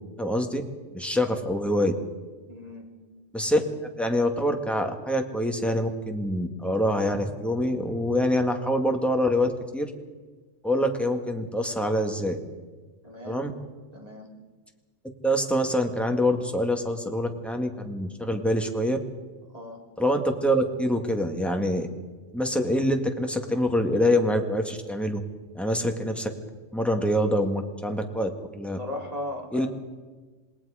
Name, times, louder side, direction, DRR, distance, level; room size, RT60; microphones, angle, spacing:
voice 1, 0.2-0.6 0.9-1.9 3.3-3.6 4.0-9.9 10.6-12.4 13.3-13.5 15.2-19.0 20.0-21.9 22.3-25.2 25.5-26.3 26.7-28.8 29.5-29.7, equal, ahead, 3 dB, 1.8 m, -25 dB
voice 2, 2.5-2.8 13.0-13.4 13.9-14.3 19.5-19.8 28.8-29.7, left 1 dB, 30° right, -1 dB, 3.6 m, -37 dB
27.5 x 19.5 x 5.0 m, 1.3 s
omnidirectional pair, 1.2 m